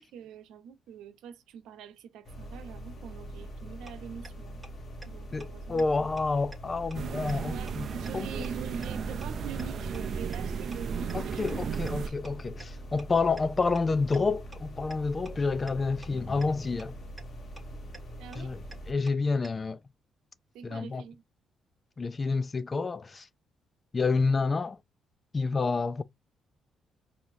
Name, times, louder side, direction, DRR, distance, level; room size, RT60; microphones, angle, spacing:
voice 1, 0.0-4.6 5.0-6.2 7.3-12.2 18.2-18.5 20.5-21.2, right 7 dB, 85° right, 0.8 m, -44 dB
sound 1, 2.2-18.9, equal, 55° left, 1.3 m, -43 dB
sound 2, 3.9-4.0 4.2-4.3 4.6-4.7 5.0-5.1 5.4-5.5 5.8-5.9 6.2-6.3 6.5-6.6 6.9-7.0 7.3-7.4 7.7-7.8 8.1-8.2 8.4-8.5 8.8-8.9 9.2-9.3 9.6-9.7 9.9-10.0 10.3-10.4 10.7-10.8 11.1-11.2 11.5-11.6 11.9-12.0 12.2-12.3 12.6-12.7 13.0-13.1 13.4-13.5 13.8-13.9 14.1-14.2 14.5-14.6 14.9-15.0 15.3-15.4 15.7-15.8 16.0-16.1 16.4-16.5 16.8-16.9 17.2-17.3 17.6-17.7 17.9-18.0 18.3-18.4 18.7-18.8 19.1-19.2 19.4-19.5, right 2 dB, 15° right, 1.5 m, -46 dB
voice 2, 5.3-7.9 8.1-8.3 11.1-17.0 18.4-18.6 18.9-19.8 20.6-21.0 22.0-23.3 23.9-24.8 25.3-26.0, left 4 dB, 30° left, 0.4 m, -29 dB
sound 3, 6.9-12.1, right 6 dB, 55° right, 0.4 m, -35 dB
4.7 x 2.8 x 2.7 m
cardioid pair, 90°, 0 cm